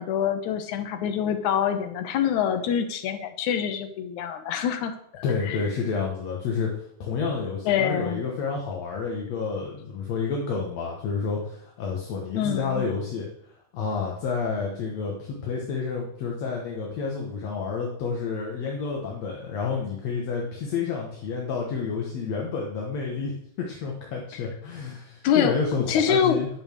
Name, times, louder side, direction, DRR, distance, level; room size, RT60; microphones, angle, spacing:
voice 1, 0.0-5.6 7.7-8.2 12.3-12.8 25.2-25.5 25.9-26.4, left 8 dB, 85° left, 8 dB, 2.4 m, -25 dB
voice 2, 5.2-13.3 13.7-23.3 23.6-26.5, left 5 dB, 65° left, -1 dB, 2.5 m, -29 dB
11.0 x 6.2 x 6.6 m, 0.72 s
omnidirectional pair, 3.3 m